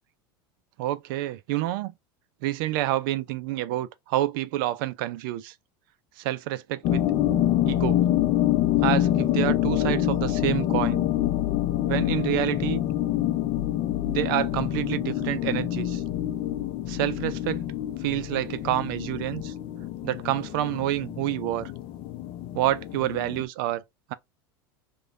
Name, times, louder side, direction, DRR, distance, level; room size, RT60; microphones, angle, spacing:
voice 1, 0.8-1.9 2.4-5.5 6.2-7.0 7.7-8.0 8.8-11.0 11.9-12.8 14.0-16.0 16.9-17.6 18.0-19.5 20.0-21.7 22.5-23.8, right 14 dB, 70° right, 0.4 m, -28 dB
sound 1, 6.8-23.4, left 12 dB, 50° left, 0.4 m, -26 dB
3.0 x 2.2 x 2.4 m
supercardioid pair, 110°, 12 cm